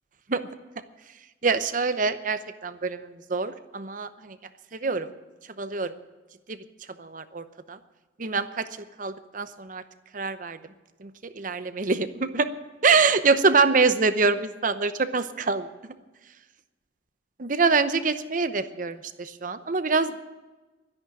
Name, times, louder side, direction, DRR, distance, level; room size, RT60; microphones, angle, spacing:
voice 1, 1.4-4.4 4.8-5.1 5.6-5.9 6.5-6.6 7.0-7.8 8.2-8.7 9.0-9.8 10.1-10.6 11.0-12.5 12.8-15.7 17.4-20.2, right 4 dB, 50° right, 11 dB, 0.8 m, -25 dB
12.0 x 10.5 x 8.8 m, 1.2 s
head